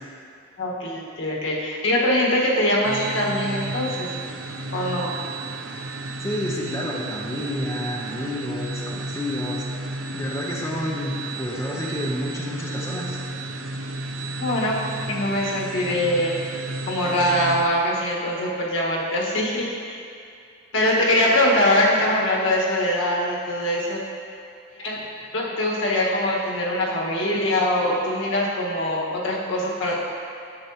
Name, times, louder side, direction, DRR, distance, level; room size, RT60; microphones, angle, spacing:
voice 1, 0.6-4.1 4.7-5.1 14.4-14.8 15.0-16.3 16.9-20.0 20.7-24.0 24.8-25.0 25.3-30.0, left 1 dB, 75° left, -4 dB, 1.5 m, -23 dB
sound 1, 2.8-17.6, right 2 dB, 80° right, 0.6 m, -32 dB
voice 2, 6.2-9.7 10.1-13.2, left 1 dB, 15° left, -4 dB, 0.8 m, -29 dB
9.7 x 7.6 x 2.9 m, 2.4 s
head